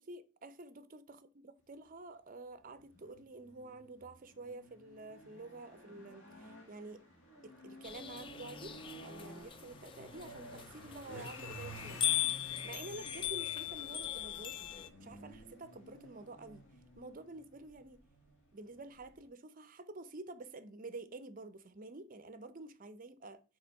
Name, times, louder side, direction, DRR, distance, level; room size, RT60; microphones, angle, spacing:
voice 1, 0.0-7.0 7.4-12.1 12.4-14.7 15.0-16.6 17.0-18.0 18.5-23.4, right 2 dB, 40° right, 0.6 m, -49 dB
sound 1, 2.6-19.3, right 1 dB, 60° left, 2.2 m, -53 dB
sound 2, 7.8-14.9, left 11 dB, 25° left, 0.3 m, -39 dB
4.9 x 4.4 x 5.4 m
head